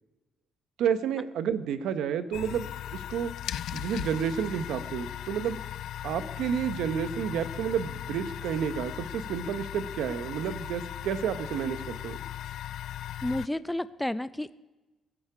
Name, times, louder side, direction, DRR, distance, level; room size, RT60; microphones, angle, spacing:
voice 1, 0.8-3.3 3.7-5.6 6.0-12.2, right 8 dB, 80° right, 11 dB, 0.9 m, -30 dB
sound 1, 2.3-13.5, left 11 dB, 75° left, 0.4 m, -38 dB
voice 2, 13.2-14.6, left 1 dB, 10° left, 14 dB, 0.5 m, -31 dB
17.5 x 13.5 x 5.0 m, 1.2 s
cardioid pair, 90°, 0 cm